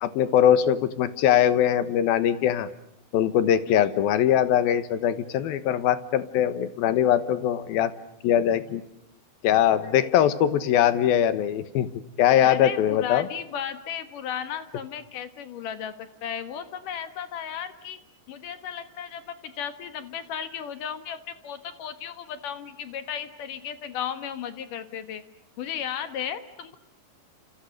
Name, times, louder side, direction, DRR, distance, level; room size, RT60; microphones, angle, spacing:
voice 1, 0.0-2.7 3.1-7.9 8.2-8.8 9.4-11.9 12.2-13.3, left 10 dB, 80° left, 13 dB, 3.1 m, -21 dB
voice 2, 9.8-10.4 12.4-18.0 18.3-21.2 21.4-25.2 25.6-26.8, left 8 dB, 65° left, 11 dB, 2.9 m, -35 dB
29.5 x 28.0 x 6.7 m, 0.80 s
omnidirectional pair, 4.3 m